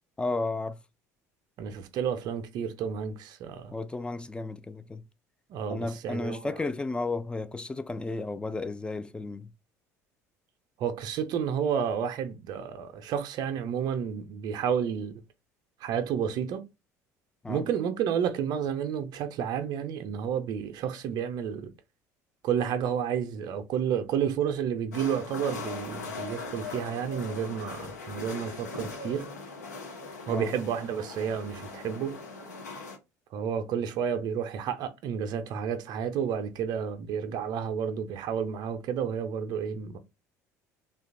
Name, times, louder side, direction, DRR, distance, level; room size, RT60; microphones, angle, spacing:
voice 1, 0.2-0.8 3.7-5.0 5.7-9.5 17.4-17.7 30.3-30.5, left 3 dB, 10° left, 0.3 m, -33 dB
voice 2, 1.6-3.7 5.5-6.6 10.8-15.2 15.8-16.6 17.5-21.7 22.4-29.3 30.3-32.2 33.3-40.0, right 8 dB, 55° right, 0.5 m, -31 dB
sound 1, 24.9-33.0, left 4 dB, 90° left, 0.5 m, -40 dB
2.7 x 2.3 x 2.4 m
hypercardioid pair, 65°, 9 cm